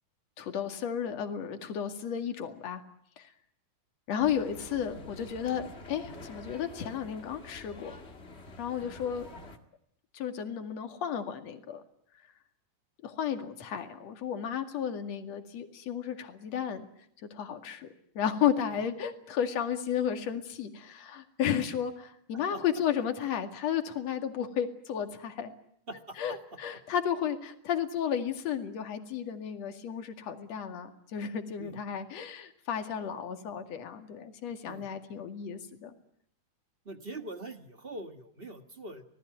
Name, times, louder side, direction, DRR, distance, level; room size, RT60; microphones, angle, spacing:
voice 1, 0.4-2.8 3.2-3.3 4.1-7.9 8.6-9.3 10.1-11.8 13.0-16.9 17.3-17.9 18.1-25.5 26.2-35.9, left 8 dB, 60° left, 7 dB, 3.2 m, -33 dB
sound 1, 4.2-9.6, left 2 dB, 25° left, 1.7 m, -47 dB
voice 2, 25.9-26.4 31.6-31.8 34.7-34.8 36.8-39.0, right 2 dB, 35° right, 8 dB, 0.9 m, -43 dB
26.0 x 18.5 x 9.3 m, 0.72 s
omnidirectional pair, 3.6 m